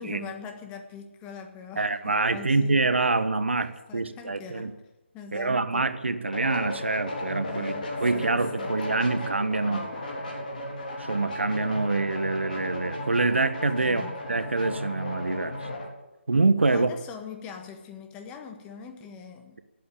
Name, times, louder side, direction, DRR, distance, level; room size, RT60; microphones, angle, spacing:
voice 1, 0.0-2.8 3.9-4.7 5.1-5.9 7.4-8.8 13.8-14.2 16.6-19.6, left 6 dB, 15° left, 6 dB, 1.5 m, -42 dB
voice 2, 1.8-4.7 5.3-7.7 8.0-10.1 11.0-14.0 14.3-15.6 16.3-16.9, right 3 dB, 75° right, 11 dB, 1.4 m, -26 dB
sound 1, 6.3-15.9, left 1 dB, 45° left, 4.1 m, -35 dB
17.5 x 8.5 x 8.6 m, 1.0 s
figure-of-eight pair, 155°, 6 cm